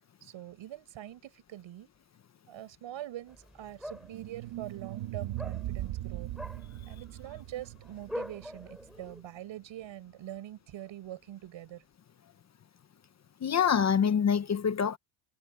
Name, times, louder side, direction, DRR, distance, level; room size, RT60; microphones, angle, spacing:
voice 1, 0.2-1.9 2.5-6.3 6.9-11.8, right 13 dB, 65° right, 7.9 m, -44 dB
sound 1, 3.3-9.2, equal, ahead, 6.0 m, -45 dB
sound 2, 3.9-9.0, right 14 dB, 90° right, 2.4 m, -39 dB
voice 2, 13.4-15.0, left 7 dB, 35° left, 0.9 m, -25 dB
cardioid pair, 150°, 49 cm